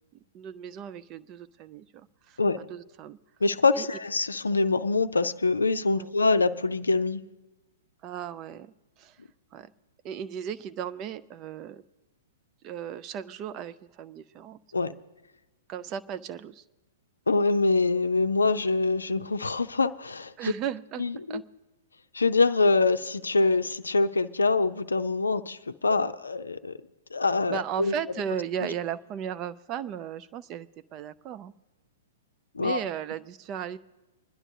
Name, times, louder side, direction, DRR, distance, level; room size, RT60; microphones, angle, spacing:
voice 1, 0.1-3.2 3.8-3.9 6.0-6.1 8.0-9.2 9.5-9.7 10.0-11.8 12.6-14.6 15.7-16.6 20.4-21.0 21.3-21.4 27.5-31.5 32.6-33.8, right 9 dB, 30° right, 0.4 m, -36 dB
voice 2, 3.4-7.2 14.7-15.0 17.3-20.5 21.0-21.4 22.1-26.8 27.1-27.9 32.5-32.8, left 3 dB, 75° left, 0.5 m, -25 dB
25.5 x 11.0 x 2.7 m
figure-of-eight pair, 110°, 0 cm